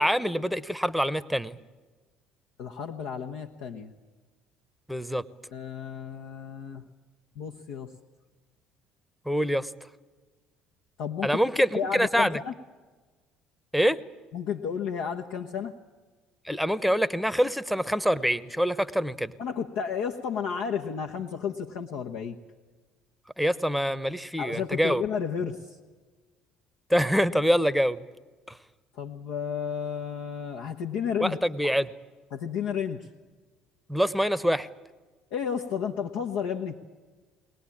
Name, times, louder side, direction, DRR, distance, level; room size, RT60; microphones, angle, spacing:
voice 1, 0.0-1.6 4.9-5.2 9.3-9.7 11.2-12.4 13.7-14.0 16.4-19.3 23.4-25.0 26.9-28.0 28.5-28.6 31.2-31.9 33.9-34.7, equal, ahead, 17 dB, 1.0 m, -25 dB
voice 2, 2.6-3.9 5.5-6.8 7.4-7.9 11.0-11.3 11.7-12.5 14.3-15.7 19.4-22.4 24.4-25.8 28.9-31.4 32.3-33.1 35.3-36.8, left 7 dB, 65° left, 2 dB, 1.1 m, -32 dB
22.5 x 19.0 x 8.7 m, 1.3 s
figure-of-eight pair, 55°, 3 cm